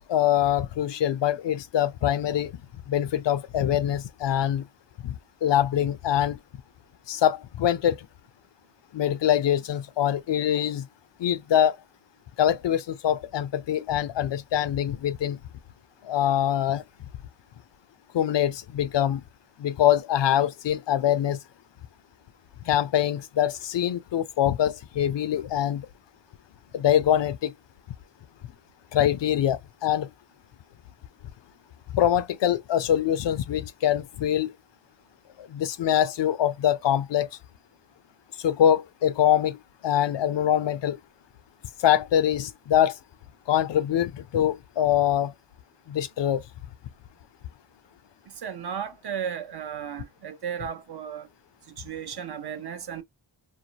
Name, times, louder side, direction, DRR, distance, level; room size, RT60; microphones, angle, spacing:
voice 1, 0.1-2.5 2.9-4.7 5.0-5.1 5.4-6.4 7.1-8.1 8.9-10.9 11.2-11.8 12.4-15.4 16.0-16.8 18.1-19.2 19.6-21.4 22.7-25.9 26.7-27.5 28.9-30.1 31.9-34.5 35.4-37.3 38.4-41.0 41.8-42.9 43.5-45.3 45.9-46.4, left 10 dB, 65° left, 0.5 m, -24 dB
voice 2, 48.3-51.3 51.6-53.0, right 8 dB, 55° right, 0.7 m, -35 dB
2.5 x 2.0 x 2.7 m
cardioid pair, 65°, 48 cm